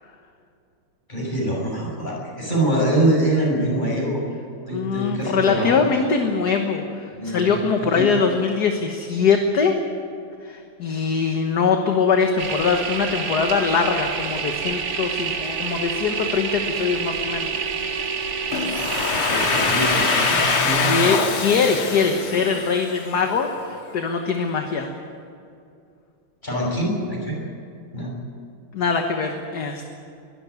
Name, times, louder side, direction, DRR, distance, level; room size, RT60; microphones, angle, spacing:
voice 1, 1.1-4.2 4.7-5.7 7.1-8.0 18.7-21.2 26.4-27.4 27.9-28.1, right 1 dB, 20° left, -3 dB, 6.8 m, -24 dB
voice 2, 4.7-9.8 10.4-17.5 20.7-24.9 28.7-29.8, left 5 dB, 50° left, 4 dB, 1.7 m, -22 dB
sound 1, 12.4-20.6, right 6 dB, 80° right, 2.7 m, -28 dB
Domestic sounds home sounds, 18.5-23.3, left 5 dB, 75° left, 2.5 m, -23 dB
22.0 x 14.0 x 9.7 m, 2.5 s
omnidirectional pair, 2.4 m